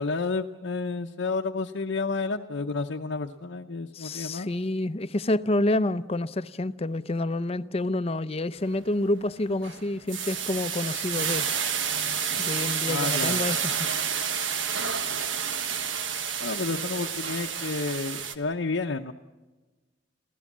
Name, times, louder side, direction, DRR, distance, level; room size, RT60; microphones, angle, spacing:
voice 1, 0.0-4.5 12.9-13.4 16.4-19.1, left 3 dB, 80° left, 0.8 m, -30 dB
voice 2, 3.9-11.5 12.4-13.9, left 1 dB, 30° left, 0.6 m, -28 dB
sound 1, 8.6-8.9 9.3-18.3, right 7 dB, 85° right, 1.3 m, -29 dB
26.0 x 16.0 x 7.3 m
head